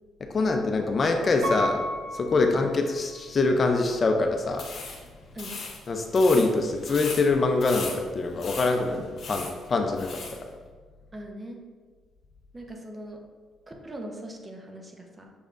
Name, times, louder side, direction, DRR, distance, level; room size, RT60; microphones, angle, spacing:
voice 1, 0.3-1.8 2.1-4.7 5.9-10.2, left 3 dB, 40° left, 4 dB, 0.5 m, -24 dB
Piano, 1.4-3.4 4.0-4.1, equal, 85° right, 1.0 m, -33 dB
sound 1, 4.5-10.4, left 4 dB, 60° left, 0.9 m, -39 dB
voice 2, 11.1-11.6 12.5-13.2 13.7-15.3, right 1 dB, 25° right, 2 dB, 0.7 m, -40 dB
6.2 x 3.4 x 2.5 m, 1.5 s
cardioid pair, 90°, 0 cm